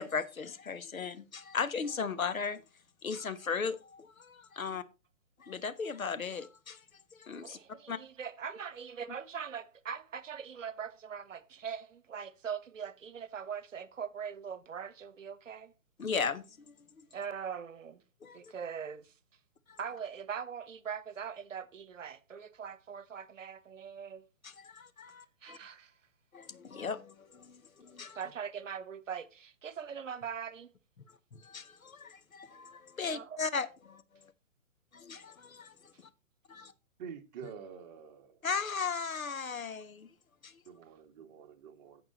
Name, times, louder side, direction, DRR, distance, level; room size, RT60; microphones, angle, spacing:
voice 1, 0.0-2.6 3.0-4.8 5.4-6.8 7.2-7.6 7.9-8.0 16.0-17.0 18.2-18.5 19.7-19.8 24.4-25.6 26.3-28.2 31.3-34.3 34.9-36.1 36.5-36.7 38.4-40.1 40.4-40.6, left 5 dB, 85° left, 1.3 m, -37 dB
voice 2, 7.4-15.7 17.1-18.0 18.3-19.1 19.8-24.3 25.4-25.9 28.1-30.7 33.0-33.4, right 7 dB, 65° right, 1.2 m, -41 dB
voice 3, 37.0-38.5 40.7-42.0, right 7 dB, 30° right, 1.6 m, -48 dB
17.5 x 5.9 x 3.0 m
figure-of-eight pair, 135°, 41 cm